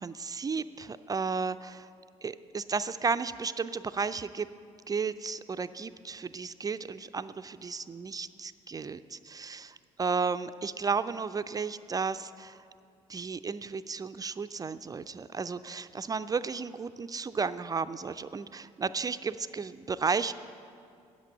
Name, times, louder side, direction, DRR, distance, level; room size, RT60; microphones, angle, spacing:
voice 1, 0.0-1.9 2.2-4.5 4.9-12.6 13.1-20.3, right 5 dB, 25° right, 12 dB, 0.4 m, -33 dB
8.3 x 8.1 x 8.5 m, 2.4 s
hypercardioid pair, 50°, 16 cm